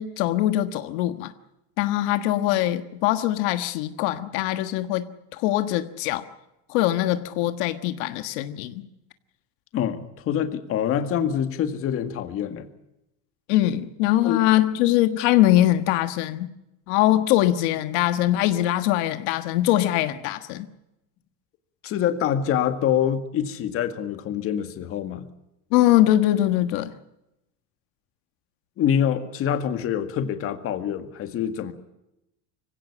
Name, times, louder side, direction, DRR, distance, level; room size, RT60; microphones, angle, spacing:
voice 1, 0.0-1.3 1.8-5.1 5.3-6.3 6.7-8.8 13.5-16.5 16.9-20.7 25.7-26.9, left 14 dB, 75° left, 10 dB, 1.5 m, -22 dB
voice 2, 9.7-12.7 14.2-14.4 21.8-25.3 28.8-31.7, left 9 dB, 40° left, 9 dB, 1.9 m, -25 dB
24.5 x 17.0 x 8.5 m, 0.91 s
cardioid pair, 165°, 35 cm